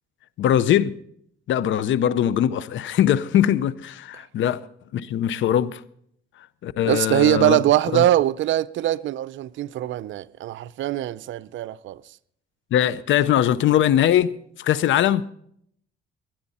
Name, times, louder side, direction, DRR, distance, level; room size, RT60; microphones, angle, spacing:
voice 1, 0.4-0.9 1.5-4.7 4.9-5.8 6.6-7.6 7.9-8.0 12.7-15.3, left 10 dB, 75° left, 0.7 m, -21 dB
voice 2, 6.9-12.0, right 13 dB, 75° right, 0.6 m, -22 dB
20.5 x 10.5 x 4.2 m
cardioid pair, 90°, 20 cm